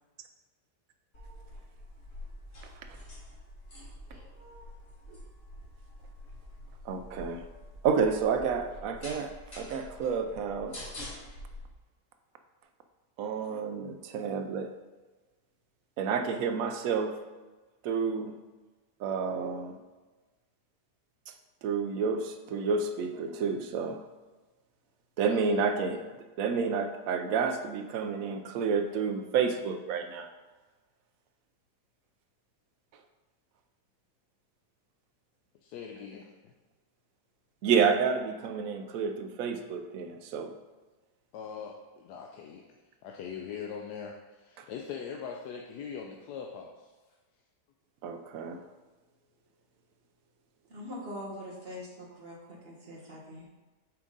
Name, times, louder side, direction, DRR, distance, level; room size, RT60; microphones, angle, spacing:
sound 1, 1.1-11.6, left 1 dB, 55° left, 2.5 m, -46 dB
voice 1, 6.8-7.4 7.8-10.9 13.2-14.7 16.0-17.2 17.8-18.3 19.0-19.8 21.6-24.0 25.2-30.3 37.6-40.5 44.6-44.7 48.0-48.6, right 5 dB, 70° right, 7 dB, 0.9 m, -30 dB
voice 2, 35.6-36.3 41.3-42.6 43.0-46.9, left 7 dB, 80° left, 1 dB, 1.1 m, -41 dB
voice 3, 50.7-53.4, left 1 dB, 40° right, -4 dB, 1.4 m, -43 dB
7.3 x 3.7 x 3.9 m, 1.2 s
omnidirectional pair, 1.7 m